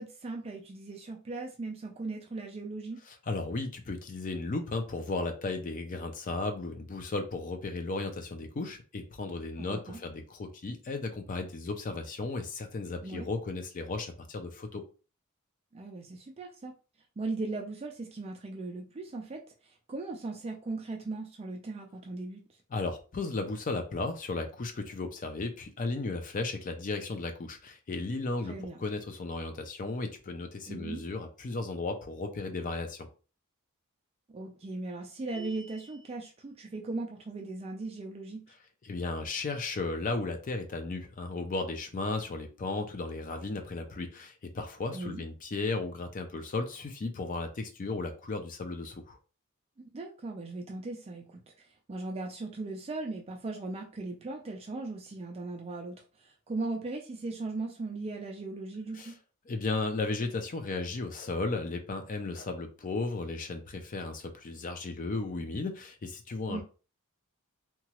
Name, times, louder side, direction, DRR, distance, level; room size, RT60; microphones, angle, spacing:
voice 1, 0.0-3.0 9.6-10.0 13.0-13.3 15.7-16.7 17.2-22.4 28.5-28.8 30.7-31.0 34.3-38.4 44.9-45.2 49.9-59.1 66.5-66.6, right 3 dB, 25° right, 0.4 m, -38 dB
voice 2, 3.1-14.8 22.7-33.1 38.8-49.2 58.9-59.1 59.5-66.6, left 3 dB, 35° left, 0.4 m, -35 dB
sound 1, 35.3-36.1, right 3 dB, 80° left, 1.3 m, -47 dB
2.9 x 2.3 x 2.9 m
head